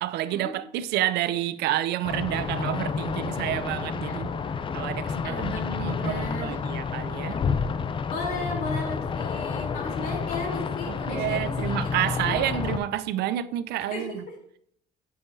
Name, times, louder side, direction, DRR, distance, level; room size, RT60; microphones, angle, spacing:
voice 1, 0.0-4.3 4.7-7.4 10.9-14.3, right 13 dB, 75° right, 0.5 m, -29 dB
sound 1, 2.0-12.8, left 5 dB, 30° left, 0.4 m, -30 dB
voice 2, 5.2-6.6 8.1-11.7 12.1-12.3 13.9-14.2, left 2 dB, 60° left, 3.4 m, -35 dB
11.0 x 5.7 x 2.7 m
cardioid pair, 110°, 17 cm